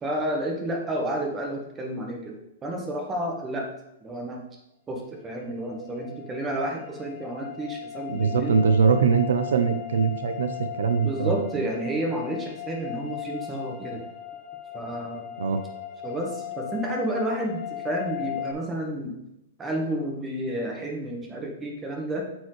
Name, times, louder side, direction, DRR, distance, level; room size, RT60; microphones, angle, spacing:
voice 1, 0.0-3.7 4.0-4.4 4.9-8.6 11.0-14.0 14.7-15.3 16.0-19.1 19.6-22.2, right 1 dB, 15° right, 1 dB, 1.1 m, -31 dB
sound 1, 5.4-18.5, left 11 dB, 15° left, 0.7 m, -38 dB
voice 2, 8.1-10.5 10.7-11.3 15.4-15.6, right 5 dB, 80° right, 8 dB, 0.6 m, -22 dB
7.7 x 4.5 x 3.2 m, 0.87 s
hypercardioid pair, 150°, 0 cm